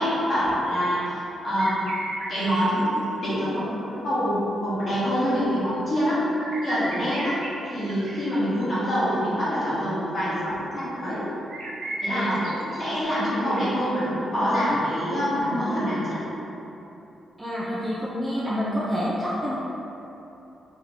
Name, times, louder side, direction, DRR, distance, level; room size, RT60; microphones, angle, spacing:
voice 1, 0.0-1.9 2.3-6.2 6.6-7.4 7.7-11.2 12.0-16.2, equal, 30° left, -11 dB, 1.3 m, -25 dB
sound 1, 1.0-1.1 1.6-3.6 5.7-8.9 11.5-13.7 14.9-15.0, right 1 dB, 65° right, 0.5 m, -35 dB
voice 2, 17.4-19.6, equal, 10° right, -8 dB, 0.4 m, -27 dB
3.7 x 2.8 x 3.4 m, 3.0 s
wide cardioid pair, 165°, 0 cm